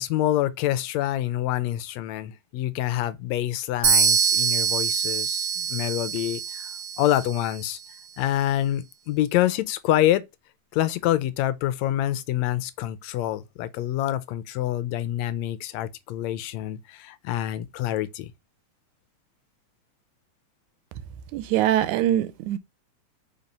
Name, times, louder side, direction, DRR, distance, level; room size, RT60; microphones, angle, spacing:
voice 1, 0.0-6.7 7.0-7.8 8.2-10.3 10.7-18.3, left 13 dB, 75° left, 1.8 m, -26 dB
sound 1, 3.8-7.6, right 6 dB, 55° right, 1.2 m, -24 dB
voice 2, 21.3-22.6, right 12 dB, 85° right, 2.1 m, -23 dB
4.4 x 4.2 x 5.2 m
omnidirectional pair, 3.3 m